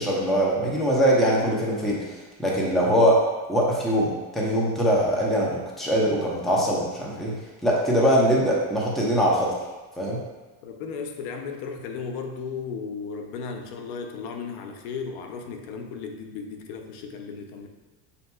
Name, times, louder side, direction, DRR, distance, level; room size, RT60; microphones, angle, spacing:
voice 1, 0.0-3.2 3.5-7.3 7.6-9.5 10.0-10.2, equal, ahead, -5 dB, 0.7 m, -22 dB
voice 2, 10.6-17.7, left 5 dB, 85° left, 4 dB, 0.7 m, -35 dB
6.5 x 2.8 x 2.3 m, 1.2 s
cardioid pair, 120°, 44 cm